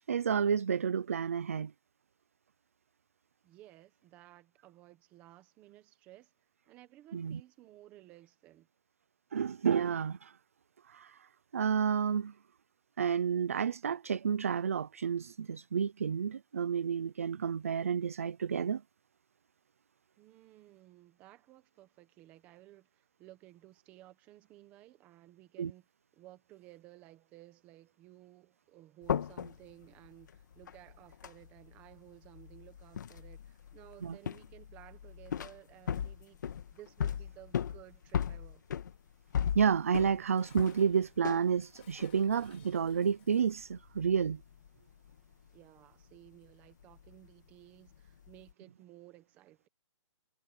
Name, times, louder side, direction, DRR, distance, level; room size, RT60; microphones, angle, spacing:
voice 1, 0.0-1.7 7.1-7.4 9.3-10.3 10.9-11.2 11.5-12.3 13.0-18.8 25.6-25.7 34.0-34.2 39.5-44.4, right 7 dB, 30° right, 0.4 m, -30 dB
voice 2, 3.4-6.3 6.7-8.7 20.2-25.9 26.1-38.6 45.5-49.7, right 15 dB, 10° right, 1.2 m, -56 dB
sound 1, 29.0-41.5 41.8-42.9 43.3-45.7 45.9-47.5 47.9-48.5, left 8 dB, 35° left, 1.5 m, -38 dB
Dishes pots and pans, 39.9-43.8, left 17 dB, 20° left, 4.1 m, -64 dB
hypercardioid pair, 180°, 16 cm